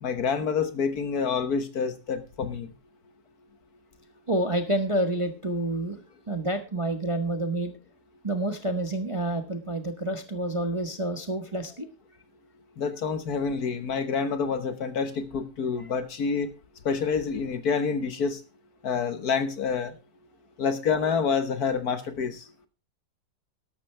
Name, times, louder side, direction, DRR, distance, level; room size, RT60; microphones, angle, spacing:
voice 1, 0.0-2.7 12.8-16.5 16.8-18.4 18.8-19.9 20.6-22.4, left 5 dB, 60° left, 10 dB, 1.6 m, -27 dB
voice 2, 4.3-6.0 6.3-7.7 8.2-11.9 15.8-15.9, right 1 dB, 20° right, 6 dB, 0.9 m, -28 dB
12.5 x 12.0 x 3.3 m, 0.29 s
omnidirectional pair, 1.9 m